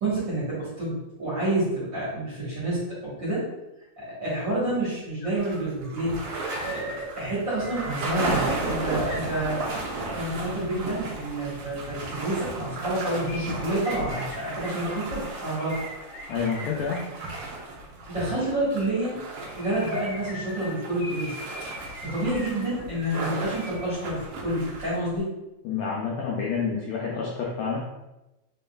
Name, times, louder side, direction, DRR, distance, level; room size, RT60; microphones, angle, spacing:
voice 1, 0.0-3.4 4.0-6.2 6.6-9.6 10.1-15.8 18.1-19.2 19.6-21.4 22.0-25.3, right 1 dB, 50° right, -8 dB, 1.4 m, -28 dB
sound 1, 4.8-4.9 5.2-10.0 13.3-17.5 19.3-23.9 24.2-24.3, left 1 dB, 55° left, 1.3 m, -42 dB
sound 2, 5.4-25.2, right 2 dB, 85° right, 1.2 m, -35 dB
voice 2, 16.3-17.1 25.6-27.8, left 5 dB, 80° left, -3 dB, 1.6 m, -28 dB
4.3 x 3.7 x 2.3 m, 0.99 s
omnidirectional pair, 3.7 m